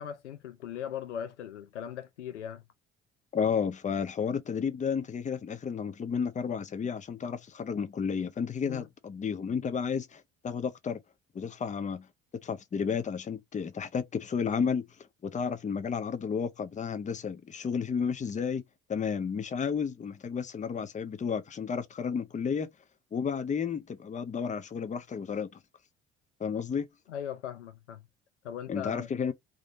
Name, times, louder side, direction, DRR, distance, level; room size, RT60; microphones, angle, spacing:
voice 1, 0.0-2.6 8.6-8.9 27.1-28.0 28.4-29.1, left 9 dB, 85° left, 0.6 m, -39 dB
voice 2, 3.3-11.0 11.3-12.1 12.4-14.8 15.2-18.6 18.9-22.7 23.1-25.6 26.4-26.9 28.7-29.3, left 6 dB, 20° left, 0.6 m, -32 dB
3.6 x 2.9 x 2.6 m
figure-of-eight pair, 50°, 34 cm